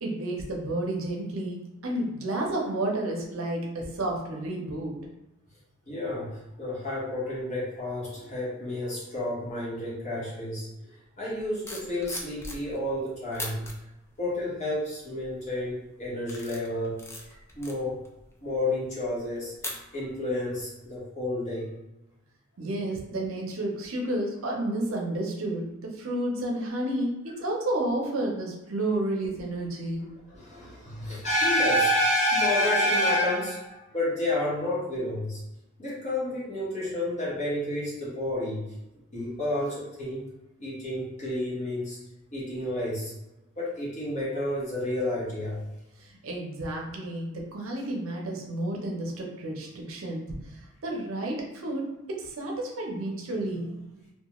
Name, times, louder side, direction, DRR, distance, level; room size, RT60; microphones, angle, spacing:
voice 1, 0.0-5.0 22.6-30.1 46.0-50.3 50.8-53.7, right 1 dB, 75° right, -1 dB, 0.6 m, -31 dB
voice 2, 5.9-10.7 11.2-13.6 14.2-17.0 17.5-18.0 18.4-19.5 19.9-21.7 30.3-35.4 35.8-38.6 39.1-40.2 40.6-42.0 42.3-43.1 43.6-45.6, left 1 dB, 35° left, -7 dB, 1.0 m, -29 dB
sound 1, 11.4-12.9 13.3-13.7 14.4-14.7 15.2-15.6 16.0-20.3 20.6-20.9, left 2 dB, 10° left, 0.3 m, -41 dB
2.3 x 2.3 x 2.9 m, 0.95 s
head